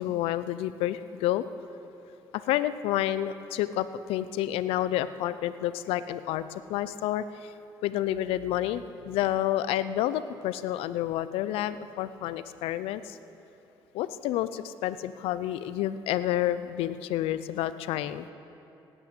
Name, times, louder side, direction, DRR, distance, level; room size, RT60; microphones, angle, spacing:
voice 1, 0.0-1.4 2.3-7.5 7.8-13.2 13.9-18.3, left 13 dB, 85° left, 14 dB, 0.6 m, -29 dB
18.0 x 8.9 x 8.3 m, 2.9 s
cardioid pair, 85°, 9 cm